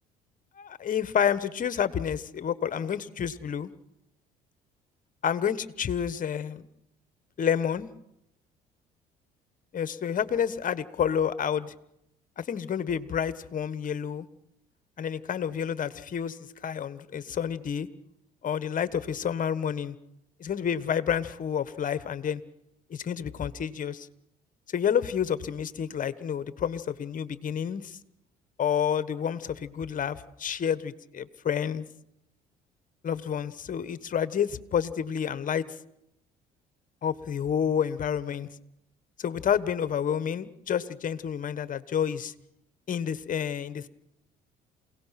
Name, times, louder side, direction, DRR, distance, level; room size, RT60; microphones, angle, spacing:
voice 1, 0.6-3.7 5.2-6.7 7.4-7.9 9.7-11.7 12.4-14.3 15.0-17.9 18.4-20.0 20.4-22.4 22.9-24.1 24.7-28.0 28.6-31.8 33.0-35.6 37.0-38.5 39.2-42.3 42.9-43.9, left 8 dB, 45° left, 14 dB, 1.4 m, -29 dB
28.0 x 18.0 x 6.0 m, 0.81 s
hypercardioid pair, 65°, 19 cm